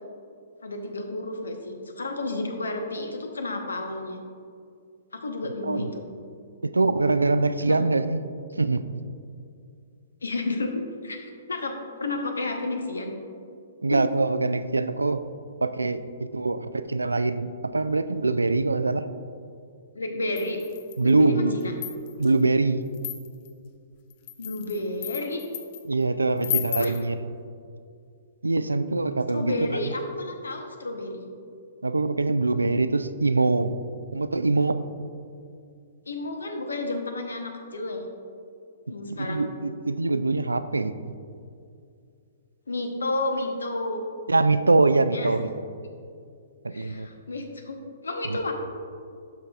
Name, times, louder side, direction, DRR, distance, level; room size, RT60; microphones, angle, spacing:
voice 1, 0.6-4.2 5.1-6.0 7.6-7.7 10.2-13.1 13.9-14.0 19.9-20.6 21.0-21.7 24.4-25.4 26.8-26.9 29.3-31.3 36.1-38.0 38.9-39.5 42.7-44.0 45.1-45.3 46.7-47.8 48.0-48.5, left 2 dB, 75° left, 4 dB, 0.8 m, -31 dB
voice 2, 6.6-8.2 8.6-8.8 13.8-15.2 15.6-19.1 21.0-21.6 22.2-22.8 25.9-27.1 28.4-29.9 31.8-33.7 34.1-34.8 39.1-40.9 44.3-45.5 46.6-47.1 48.3-48.4, right 3 dB, 85° right, 12 dB, 0.3 m, -23 dB
sound 1, 20.4-21.1 21.6-22.3 22.9-23.5 24.1-25.8 26.4-27.0, left 12 dB, 45° left, 0.5 m, -33 dB
11.5 x 5.3 x 2.3 m, 2.4 s
figure-of-eight pair, 120°, 0 cm